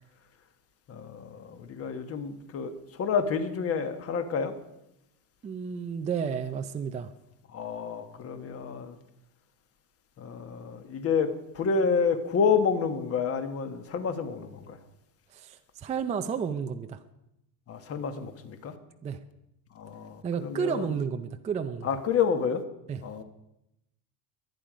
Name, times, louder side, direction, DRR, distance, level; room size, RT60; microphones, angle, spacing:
voice 1, 0.9-4.6 7.5-9.0 10.2-14.8 17.7-18.7 19.7-20.9 21.8-22.6 23.0-23.2, left 6 dB, 30° left, 9 dB, 1.4 m, -29 dB
voice 2, 5.4-7.1 15.3-17.0 19.0-19.2 20.2-21.9 22.9-23.0, right 6 dB, 15° right, 7 dB, 0.5 m, -32 dB
23.0 x 9.1 x 5.1 m, 0.85 s
cardioid pair, 155°, 43 cm